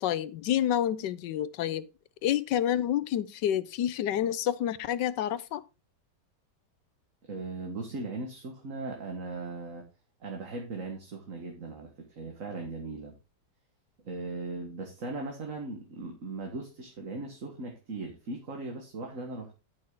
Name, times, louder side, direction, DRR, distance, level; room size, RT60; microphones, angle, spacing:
voice 1, 0.0-1.9 2.2-5.6, left 11 dB, 85° left, 1.4 m, -28 dB
voice 2, 7.3-9.8 10.2-13.2 14.0-19.6, right 3 dB, 50° right, 1.9 m, -38 dB
11.0 x 6.3 x 3.8 m
omnidirectional pair, 1.8 m